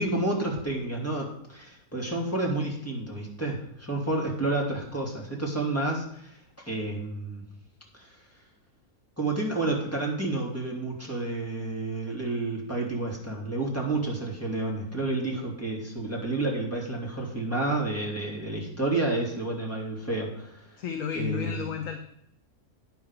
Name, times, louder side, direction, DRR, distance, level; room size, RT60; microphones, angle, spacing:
voice 1, 0.0-6.4 6.7-7.4 7.9-8.2 9.2-20.8 21.1-21.7, right 2 dB, 10° left, -3 dB, 2.7 m, -30 dB
voice 2, 20.8-22.0, left 7 dB, 65° left, 6 dB, 1.2 m, -32 dB
9.8 x 6.0 x 7.2 m, 0.73 s
omnidirectional pair, 1.5 m